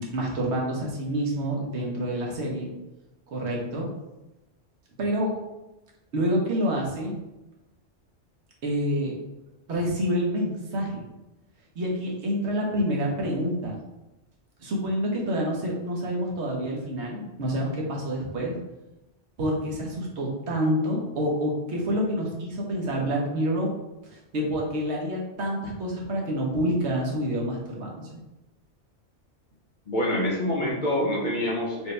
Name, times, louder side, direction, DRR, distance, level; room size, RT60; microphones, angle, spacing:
voice 1, 0.0-2.7 3.3-3.9 5.0-5.3 6.1-7.2 8.6-9.2 9.7-11.0 11.7-13.8 14.6-18.5 19.4-23.7 24.1-28.1, equal, 70° right, -2 dB, 1.3 m, -27 dB
voice 2, 29.9-31.9, left 1 dB, 50° left, -2 dB, 0.8 m, -26 dB
4.6 x 2.9 x 3.2 m, 1.0 s
omnidirectional pair, 1.2 m